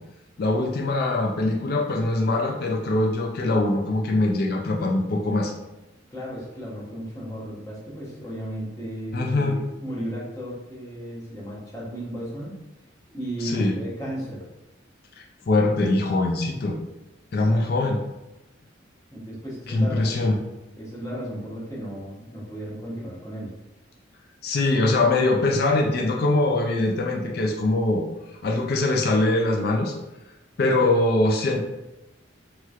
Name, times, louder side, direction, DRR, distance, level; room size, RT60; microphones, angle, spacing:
voice 1, 0.4-5.5 9.1-9.5 13.4-13.7 15.2-16.8 17.3-18.0 19.7-20.4 24.4-29.9 30.6-31.6, left 2 dB, 50° left, 0 dB, 0.3 m, -22 dB
voice 2, 6.1-12.5 13.1-14.4 17.3-17.6 19.1-20.4 20.8-23.5, equal, 15° left, -6 dB, 0.8 m, -34 dB
3.1 x 3.0 x 2.3 m, 0.98 s
head